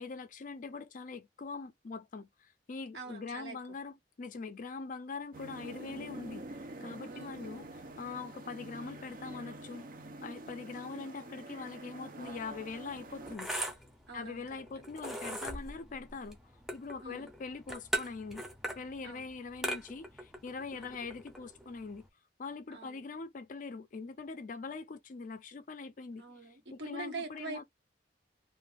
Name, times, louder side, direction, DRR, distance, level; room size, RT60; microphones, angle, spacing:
voice 1, 0.0-6.5 6.8-7.7 8.0-9.8 10.2-13.5 14.1-16.4 16.7-18.4 18.8-22.0 22.4-26.2 26.7-27.6, left 4 dB, 50° left, 0.4 m, -42 dB
voice 2, 2.9-3.6 7.1-7.6 14.1-14.4 17.0-17.3 19.0-19.3 20.7-21.0 22.7-23.1 26.2-27.6, right 3 dB, 70° right, 1.4 m, -44 dB
sound 1, 5.3-13.4, right 2 dB, 55° right, 0.7 m, -47 dB
sound 2, 12.3-22.1, right 1 dB, ahead, 0.7 m, -41 dB
2.5 x 2.4 x 3.3 m
head